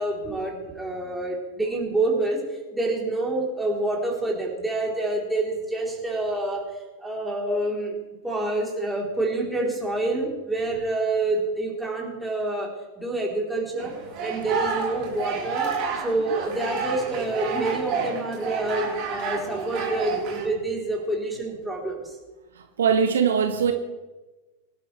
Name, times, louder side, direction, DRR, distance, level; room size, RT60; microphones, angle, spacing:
voice 1, 0.0-2.4 2.7-6.6 7.0-8.0 8.2-13.9 14.2-15.7 16.0-22.1, right 2 dB, 5° right, -3 dB, 4.0 m, -27 dB
sound 1, 13.8-20.5, right 5 dB, 40° right, 4.3 m, -30 dB
voice 2, 22.5-23.7, right 6 dB, 65° right, 6 dB, 1.2 m, -22 dB
24.0 x 11.5 x 3.5 m, 1.2 s
figure-of-eight pair, 90°, 0 cm